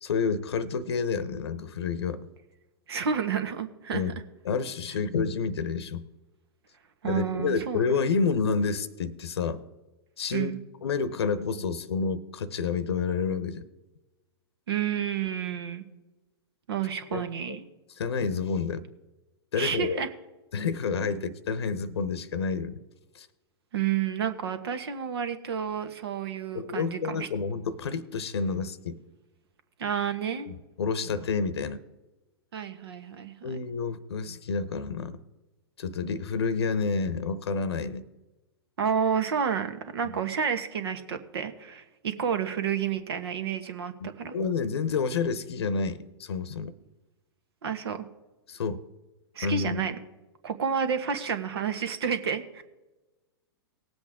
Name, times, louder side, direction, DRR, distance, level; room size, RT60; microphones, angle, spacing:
voice 1, 0.0-2.2 3.9-4.1 4.4-6.1 7.0-9.6 10.2-10.5 10.8-13.6 17.1-17.2 17.5-17.6 18.0-18.8 19.5-20.1 20.5-22.8 23.1-23.3 26.5-29.0 30.8-31.8 33.4-35.2 35.8-38.0 40.0-40.2 44.0-46.7 48.5-48.8 49.4-49.8, left 5 dB, 75° left, 15 dB, 0.8 m, -29 dB
voice 2, 2.9-4.0 7.0-8.1 10.3-10.6 14.7-15.8 16.7-17.6 19.6-20.1 23.7-27.3 29.8-30.5 32.5-33.6 38.8-44.3 47.6-48.0 49.3-49.9 50.4-52.6, right 7 dB, 70° right, 9 dB, 1.4 m, -30 dB
19.0 x 7.9 x 3.6 m, 1.1 s
hypercardioid pair, 110°, 14 cm